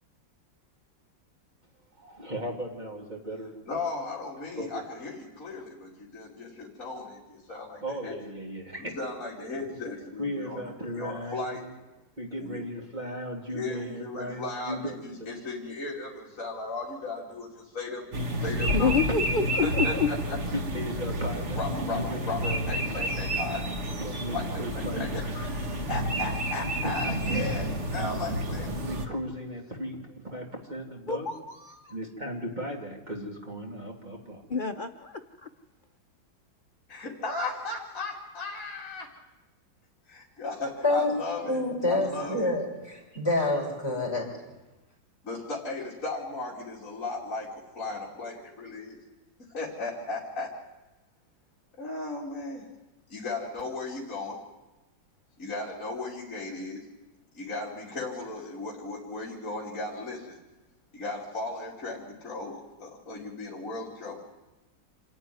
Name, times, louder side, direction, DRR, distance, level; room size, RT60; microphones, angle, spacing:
voice 1, 2.0-3.5 4.5-4.8 7.8-8.9 10.2-11.7 12.2-15.0 19.1-19.2 20.7-21.6 21.9-22.6 22.9-23.1 24.0-25.0 26.8-26.9 28.8-31.3 31.9-34.4, equal, 25° right, -1 dB, 2.8 m, -36 dB
voice 2, 3.7-8.1 8.8-11.6 12.4-12.6 13.5-19.1 19.5-20.4 21.5-23.7 24.3-28.7 36.9-39.1 40.1-41.6 41.9-42.5 45.2-49.0 49.5-50.5 51.8-52.7 53.1-54.4 55.4-56.8 57.3-60.4 60.9-64.2, left 3 dB, 45° left, -5 dB, 3.3 m, -36 dB
sound 1, 18.1-29.1, right 1 dB, 40° right, 1.7 m, -30 dB
voice 3, 18.7-20.1 31.1-31.9 34.5-35.5, left 5 dB, 70° left, 6 dB, 0.4 m, -28 dB
voice 4, 41.5-44.3, left 2 dB, 10° left, -3 dB, 6.1 m, -27 dB
26.5 x 10.5 x 9.5 m, 1.1 s
omnidirectional pair, 2.0 m